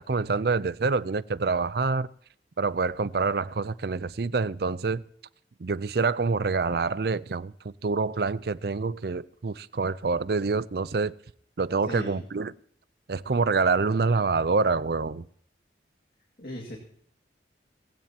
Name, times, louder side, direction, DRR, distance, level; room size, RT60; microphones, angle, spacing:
voice 1, 0.0-2.1 2.6-5.0 5.6-11.1 11.6-12.5 13.1-15.2, right 4 dB, 55° right, 0.5 m, -26 dB
voice 2, 11.9-12.2 16.4-16.8, left 1 dB, 50° left, 2.2 m, -37 dB
19.5 x 16.0 x 2.9 m
head